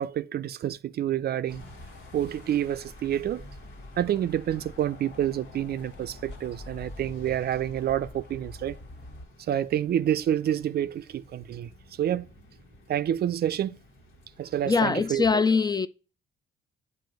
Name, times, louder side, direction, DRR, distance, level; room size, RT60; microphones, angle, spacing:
voice 1, 0.0-1.6 2.1-3.5 4.0-8.8 9.5-11.7 12.0-12.3 12.9-13.8 14.4-15.2, right 11 dB, 55° right, 0.4 m, -28 dB
sound 1, 1.5-15.2, left 2 dB, 80° left, 1.6 m, -52 dB
sound 2, 1.6-9.3, left 1 dB, 60° left, 1.8 m, -46 dB
voice 2, 14.6-15.9, left 4 dB, 20° left, 0.3 m, -23 dB
7.6 x 2.7 x 5.2 m
cardioid pair, 90°, 20 cm